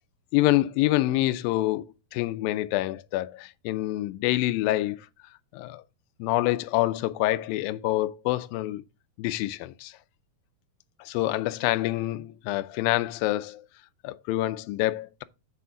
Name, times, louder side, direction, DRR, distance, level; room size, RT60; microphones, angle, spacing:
voice 1, 0.3-5.1 5.5-5.8 6.2-8.8 9.2-9.9 11.0-13.6 14.0-15.2, left 16 dB, 85° left, 2.3 m, -26 dB
7.1 x 6.9 x 3.7 m
omnidirectional pair, 4.2 m